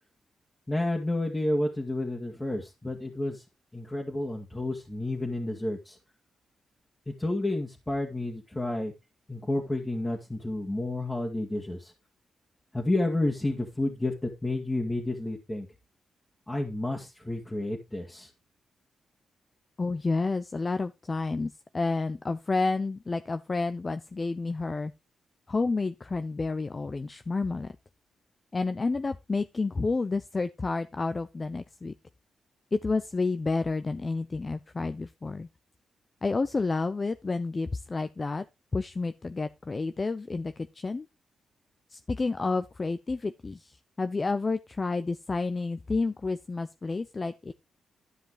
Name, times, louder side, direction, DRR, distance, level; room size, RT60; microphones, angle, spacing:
voice 1, 0.7-3.4 3.7-6.0 7.1-8.9 9.3-11.9 12.7-15.7 16.5-18.3, left 2 dB, 15° left, 2.1 m, -30 dB
voice 2, 19.8-24.9 25.5-27.7 28.5-31.9 32.7-35.5 36.2-38.5 38.7-41.1 41.9-47.5, left 3 dB, 35° left, 0.6 m, -30 dB
12.5 x 5.3 x 4.8 m
cardioid pair, 65°, 0 cm